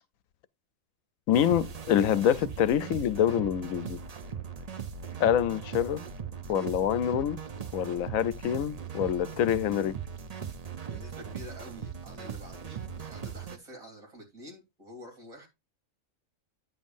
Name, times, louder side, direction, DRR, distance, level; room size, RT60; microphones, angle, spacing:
voice 1, 1.3-4.0 5.2-6.0 6.5-7.4 7.7-10.0, left 10 dB, 80° left, 1.0 m, -26 dB
sound 1, 1.3-13.6, right 7 dB, 40° right, 0.6 m, -39 dB
voice 2, 10.8-15.5, equal, 85° right, 3.6 m, -48 dB
9.4 x 7.2 x 2.6 m
omnidirectional pair, 1.4 m